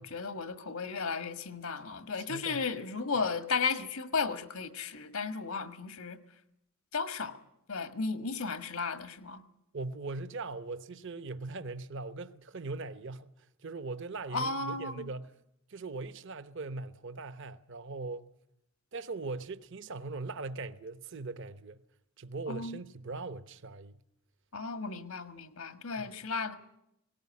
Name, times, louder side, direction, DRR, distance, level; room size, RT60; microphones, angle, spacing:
voice 1, 0.0-6.2 6.9-7.4 7.7-9.4 14.3-15.1 22.5-22.8 24.5-26.6, left 4 dB, 85° left, 1.6 m, -34 dB
voice 2, 2.2-2.6 9.7-15.4 15.7-18.3 18.9-21.8 22.2-24.0 26.0-26.3, right 3 dB, 60° right, 0.9 m, -40 dB
18.5 x 18.0 x 9.7 m
head